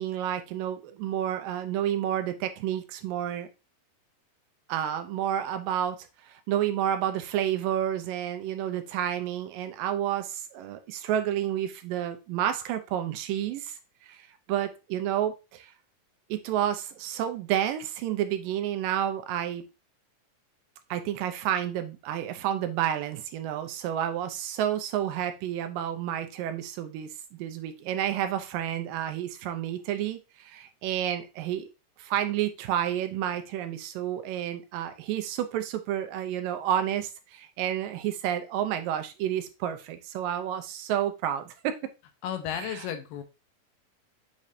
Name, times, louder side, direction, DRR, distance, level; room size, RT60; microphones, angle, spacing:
voice 1, 0.0-3.5 4.7-15.7 16.3-19.7 20.9-31.7 32.0-41.8 42.5-42.8, right 10 dB, 85° right, 8 dB, 2.5 m, -30 dB
voice 2, 42.2-43.2, left 9 dB, 90° left, 7 dB, 2.6 m, -33 dB
7.1 x 5.0 x 2.7 m, 0.28 s
omnidirectional pair, 3.9 m